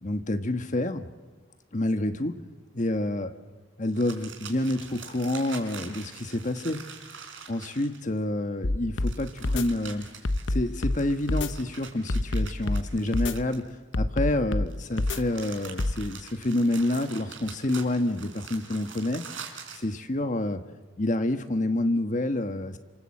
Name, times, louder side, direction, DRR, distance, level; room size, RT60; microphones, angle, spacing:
voice 1, 0.0-1.1 1.7-2.4 2.7-3.3 3.8-6.8 7.5-10.1 10.5-13.6 14.0-19.3 19.7-20.6 21.0-22.8, left 1 dB, 40° left, 8 dB, 1.3 m, -28 dB
sound 1, 3.9-8.2 9.0-13.9 14.7-19.9, right 6 dB, 85° right, 4.1 m, -45 dB
sound 2, 8.6-9.1 9.4-9.6 10.2-11.0 11.3-11.5 12.1-12.8 13.1-13.3 13.9-14.7 15.0-15.2 15.8-15.9, left 2 dB, 75° left, 0.9 m, -26 dB
28.5 x 25.5 x 7.6 m, 1.3 s
head